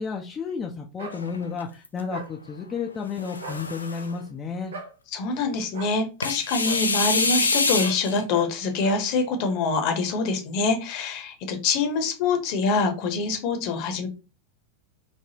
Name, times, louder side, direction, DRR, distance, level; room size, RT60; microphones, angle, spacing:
voice 1, 0.0-4.7, left 5 dB, 25° left, 0.4 m, -32 dB
sound 1, 1.0-1.2 2.1-2.3 3.3-3.6 4.7-4.9 5.7-6.0 6.6-6.8 7.8-8.0 8.3-8.5 8.8-9.0, right 3 dB, 75° right, 0.6 m, -38 dB
sound 2, 1.1-2.0 3.0-4.1 6.2-8.2, left 3 dB, 90° left, 0.3 m, -26 dB
voice 2, 5.1-14.1, left 4 dB, 50° left, 0.8 m, -25 dB
3.3 x 2.0 x 2.8 m
figure-of-eight pair, 90°, 0 cm